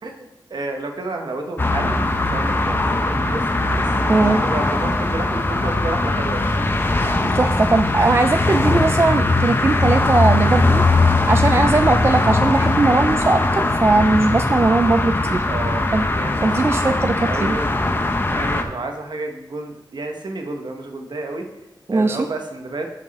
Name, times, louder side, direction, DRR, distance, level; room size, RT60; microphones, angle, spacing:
voice 1, 0.0-3.4 3.7-3.9 4.2-6.7 15.5-21.5 21.9-22.9, right 2 dB, 65° right, 3 dB, 1.1 m, -31 dB
sound 1, 1.6-18.6, left 2 dB, 25° left, 0.7 m, -20 dB
voice 2, 4.1-4.4 7.3-10.8 11.3-15.4 15.9-16.1 16.4-17.6 21.9-22.3, right 3 dB, 30° right, 8 dB, 0.3 m, -19 dB
8.0 x 5.9 x 4.2 m, 1.0 s
wide cardioid pair, 120°, 8 cm